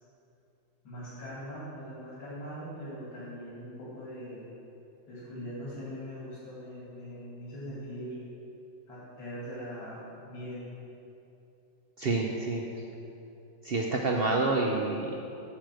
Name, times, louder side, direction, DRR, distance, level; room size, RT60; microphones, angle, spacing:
voice 1, 0.8-4.4 5.1-8.2 8.9-10.6, equal, 90° left, -8 dB, 3.1 m, -41 dB
voice 2, 12.0-12.6 13.6-15.2, right 3 dB, 85° right, 0 dB, 0.5 m, -28 dB
11.5 x 5.0 x 7.6 m, 2.8 s
omnidirectional pair, 2.0 m